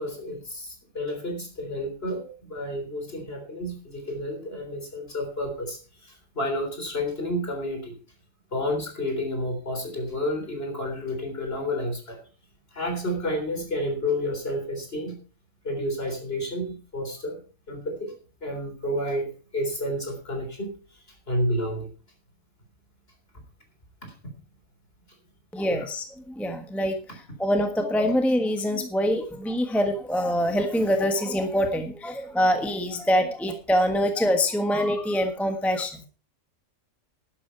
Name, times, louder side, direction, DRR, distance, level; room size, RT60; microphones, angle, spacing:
voice 1, 0.0-8.0 8.5-12.2 12.7-15.2 15.6-17.4 17.7-18.1 18.4-20.7 21.3-21.9 24.0-24.1 25.7-25.9, left 1 dB, 45° left, 4 dB, 4.0 m, -30 dB
voice 2, 25.5-36.1, equal, ahead, 6 dB, 1.3 m, -25 dB
11.5 x 11.0 x 4.6 m, 0.36 s
omnidirectional pair, 1.4 m